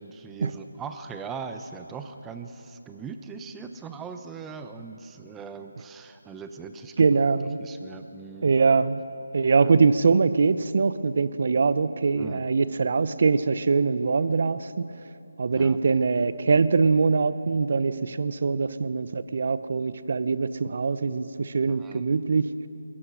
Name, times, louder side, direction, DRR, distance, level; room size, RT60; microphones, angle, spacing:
voice 1, 0.0-7.2 7.6-8.5 9.6-9.7 12.2-12.4 15.5-15.8 21.7-22.0, right 5 dB, 10° right, 7 dB, 0.9 m, -40 dB
voice 2, 7.0-7.6 8.4-9.0 9.3-14.9 15.4-22.5, right 4 dB, 50° right, 14 dB, 0.8 m, -23 dB
21.5 x 19.0 x 6.4 m, 2.9 s
figure-of-eight pair, 160°, 0 cm